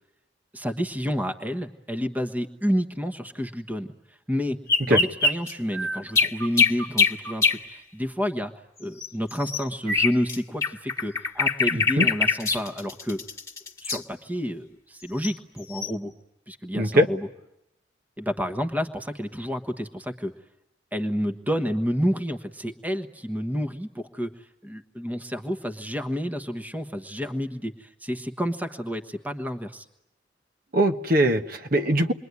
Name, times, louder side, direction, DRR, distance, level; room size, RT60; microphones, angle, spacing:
voice 1, 0.5-3.9 4.3-4.6 4.8-8.5 8.8-13.2 13.8-16.1 16.5-17.3 18.2-20.3 20.9-24.3 24.6-29.8, equal, 10° right, 7 dB, 1.3 m, -29 dB
sound 1, 4.7-7.6 9.0-10.4 10.6-14.0 15.2-15.3 15.8-15.9, left 4 dB, 20° left, 1.8 m, -23 dB
voice 2, 11.7-12.1 16.8-17.1 30.7-32.1, right 1 dB, 50° right, 5 dB, 1.3 m, -21 dB
28.0 x 22.5 x 9.6 m, 0.88 s
head